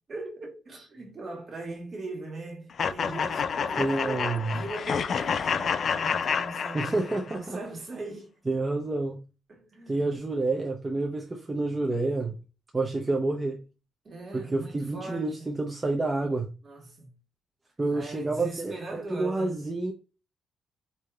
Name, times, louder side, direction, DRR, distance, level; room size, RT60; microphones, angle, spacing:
voice 1, 0.1-8.4 9.5-10.0 14.0-15.5 16.6-17.1 17.9-19.6, right 2 dB, 45° right, 1.5 m, -40 dB
sound 1, 2.8-7.4, left 6 dB, 55° left, 0.4 m, -29 dB
voice 2, 3.8-4.5 6.7-7.6 8.5-9.2 9.9-12.3 12.7-13.6 14.3-16.5 17.8-19.9, right 2 dB, 20° right, 0.7 m, -29 dB
4.6 x 2.8 x 2.4 m
cardioid pair, 95°, 0 cm